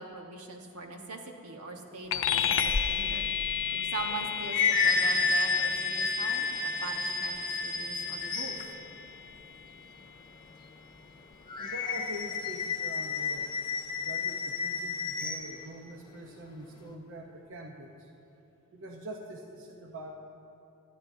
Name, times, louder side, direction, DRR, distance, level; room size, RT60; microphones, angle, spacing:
voice 1, 0.0-3.3 3.7-8.6, right 2 dB, 90° right, 2 dB, 1.3 m, -41 dB
sound 1, 2.1-11.9, left 7 dB, 60° left, 0.6 m, -34 dB
sound 2, 4.0-8.8 11.5-15.5, left 4 dB, 20° left, 1.0 m, -30 dB
voice 2, 11.6-13.5 14.0-18.1 18.7-20.1, right 1 dB, 60° right, 1 dB, 0.9 m, -44 dB
19.0 x 12.5 x 2.7 m, 2.9 s
head